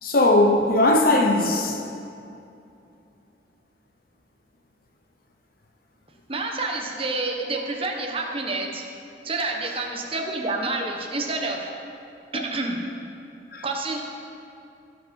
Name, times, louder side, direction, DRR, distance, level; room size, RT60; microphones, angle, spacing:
voice 1, 0.0-1.8 12.3-12.4 13.5-13.6, left 2 dB, 55° left, 0.9 m, -19 dB
voice 2, 6.3-8.8 9.2-11.7 12.3-12.8 13.6-14.0, right 2 dB, 30° right, 1.2 m, -28 dB
17.0 x 5.9 x 5.4 m
head